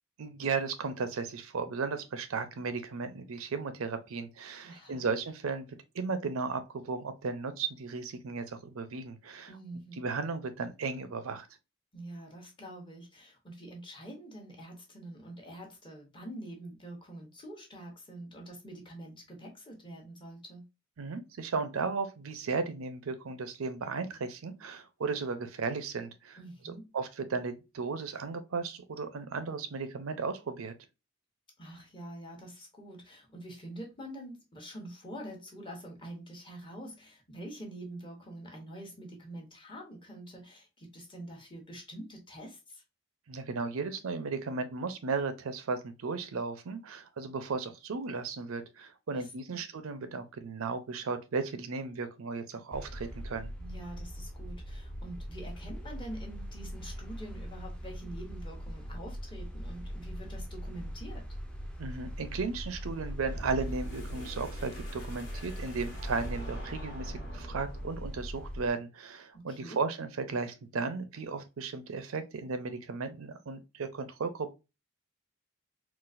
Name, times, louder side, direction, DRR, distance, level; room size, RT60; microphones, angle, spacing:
voice 1, 0.2-5.7 5.9-9.5 10.0-11.5 21.0-26.4 26.6-30.7 43.3-53.5 61.8-74.5, right 4 dB, 80° right, 0.5 m, -35 dB
voice 2, 4.6-5.0 9.5-10.0 11.9-20.6 26.4-26.9 31.6-42.8 49.1-49.6 53.6-61.3 69.3-69.8, right 1 dB, 25° left, 0.9 m, -46 dB
sound 1, 52.7-68.7, equal, 5° left, 0.5 m, -41 dB
sound 2, 63.1-68.2, right 1 dB, 50° left, 1.2 m, -43 dB
3.9 x 2.4 x 2.4 m
head